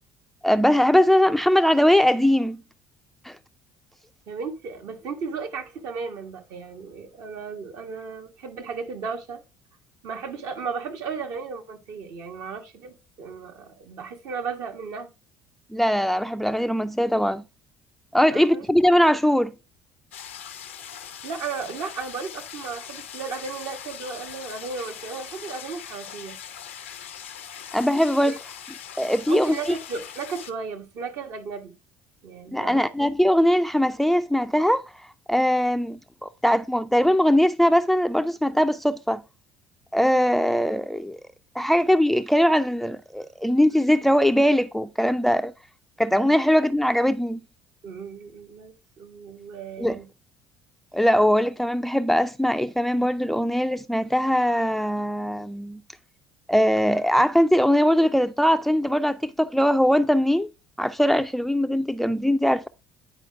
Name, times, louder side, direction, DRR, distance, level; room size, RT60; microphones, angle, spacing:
voice 1, 0.4-2.6 3.2-3.4 15.7-17.4 18.1-19.5 27.7-28.3 29.0-29.7 32.5-34.8 35.3-39.2 39.9-41.2 41.6-45.5 46.0-47.4 49.8-50.0 50.9-55.8 56.5-60.5 60.8-62.7, equal, 5° left, 0.5 m, -21 dB
voice 2, 4.3-9.4 10.0-15.1 18.3-18.6 21.2-26.4 29.3-31.7 32.2-32.9 47.8-50.1, right 5 dB, 60° right, 1.6 m, -35 dB
sound 1, 20.1-30.5, left 9 dB, 85° left, 0.6 m, -41 dB
9.8 x 4.8 x 3.5 m
hypercardioid pair, 60°, 6 cm